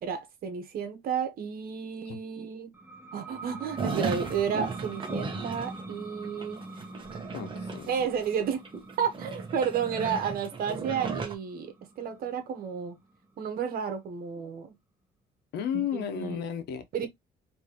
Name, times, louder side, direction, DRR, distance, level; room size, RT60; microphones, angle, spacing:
voice 1, 0.0-2.7 3.1-6.6 7.9-8.6 9.0-13.0 13.4-14.7 15.7-16.4 16.9-17.1, right 7 dB, 60° right, 1.3 m, -32 dB
sound 1, 2.7-14.0, right 2 dB, 10° right, 1.0 m, -45 dB
sound 2, 3.8-5.9 6.2-8.4 8.6-11.3, right 4 dB, 30° right, 1.2 m, -35 dB
voice 2, 7.3-7.9 15.5-17.1, left 9 dB, 75° left, 1.1 m, -33 dB
4.4 x 3.1 x 3.0 m
cardioid pair, 110°, 17 cm